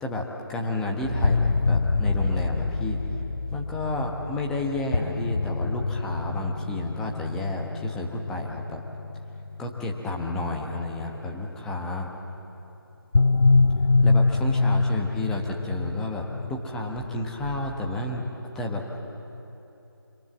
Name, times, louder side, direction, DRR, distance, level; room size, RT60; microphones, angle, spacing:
voice 1, 0.0-3.0 3.5-8.8 9.6-12.1 14.0-18.2 18.5-19.0, left 2 dB, 5° left, 0 dB, 1.1 m, -31 dB
sound 1, 1.0-11.2 13.1-18.2, left 3 dB, 65° left, 0.7 m, -25 dB
26.5 x 25.5 x 7.4 m, 3.0 s
figure-of-eight pair, 160°, 13 cm